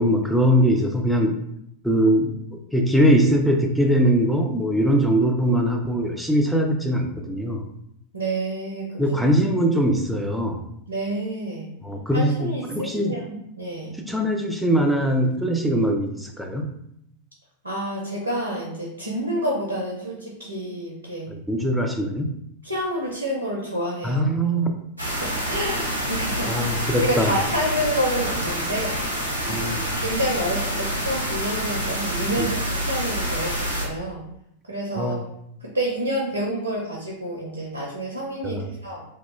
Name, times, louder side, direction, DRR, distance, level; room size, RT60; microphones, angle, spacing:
voice 1, 0.0-1.4 1.8-2.3 2.7-7.6 9.0-10.6 11.8-13.2 14.0-16.7 21.3-22.3 24.0-24.7 26.5-27.3 29.5-29.9 32.4-32.5 35.0-35.2 38.4-38.7, equal, ahead, 2 dB, 0.4 m, -21 dB
voice 2, 8.1-9.0 10.9-11.7 12.1-14.0 17.6-21.3 22.6-24.2 25.2-26.7 27.0-29.0 29.4-29.7 30.0-34.3 34.7-35.2 35.6-39.0, right 1 dB, 80° right, -3 dB, 0.5 m, -28 dB
sound 1, 25.0-33.9, equal, 90° left, 0.6 m, -27 dB
2.1 x 2.1 x 3.1 m, 0.75 s
figure-of-eight pair, 90°, 0 cm